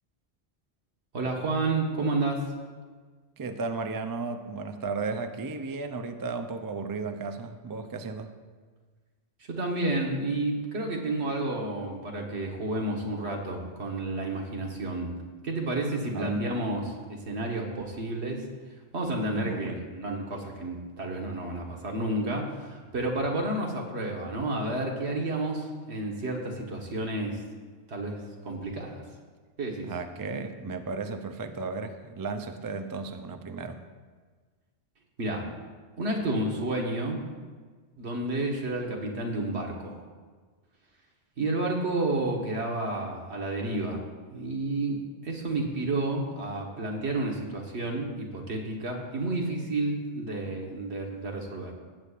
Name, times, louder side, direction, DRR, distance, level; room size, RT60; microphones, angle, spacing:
voice 1, 1.1-2.4 9.5-15.2 15.4-18.4 18.9-27.4 27.9-28.2 28.4-29.0 29.6-29.9 35.2-35.5 36.0-37.2 38.0-40.0 41.4-44.0 44.3-51.7, right 2 dB, 75° right, 0 dB, 1.6 m, -30 dB
voice 2, 3.4-8.3 16.1-16.4 19.3-19.8 29.8-33.8, right 4 dB, 35° right, 7 dB, 0.3 m, -34 dB
15.5 x 8.3 x 2.5 m, 1.5 s
omnidirectional pair, 1.1 m